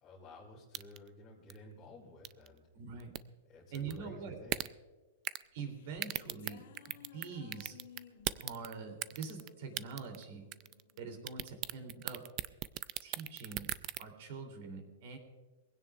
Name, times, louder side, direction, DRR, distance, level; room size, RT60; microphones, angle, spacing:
voice 1, 0.0-2.7 3.5-4.6, left 1 dB, 15° left, -5 dB, 2.3 m, -53 dB
sound 1, 0.7-1.1 1.5-1.6 2.2-2.5 3.0-3.2 3.7-4.0 4.5-4.7 5.2-5.5 6.0-7.3 7.5-8.7 9.0-9.5 9.8-10.2 10.5-11.0 11.3-14.0, right 16 dB, 30° right, 0.4 m, -37 dB
voice 2, 2.7-3.1 3.7-4.4 5.5-7.8 8.4-10.4 11.0-12.2 13.0-13.7 14.0-15.2, right 5 dB, 55° right, 4 dB, 3.2 m, -44 dB
sound 2, 5.4-12.0, left 7 dB, 70° left, 1.2 m, -59 dB
22.0 x 16.5 x 2.5 m, 1.3 s
supercardioid pair, 160°, 0 cm